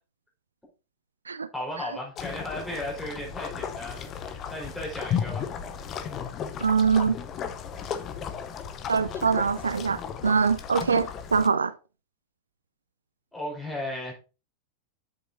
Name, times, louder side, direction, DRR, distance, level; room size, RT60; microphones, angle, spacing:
voice 1, 1.5-5.5 13.3-14.1, left 1 dB, ahead, 4.4 m, -35 dB
sound 1, 2.1-11.5, left 8 dB, 30° left, 0.7 m, -35 dB
voice 2, 6.6-7.2 8.9-11.7, right 5 dB, 75° right, 0.3 m, -23 dB
8.1 x 7.8 x 2.6 m
figure-of-eight pair, 90°, 0 cm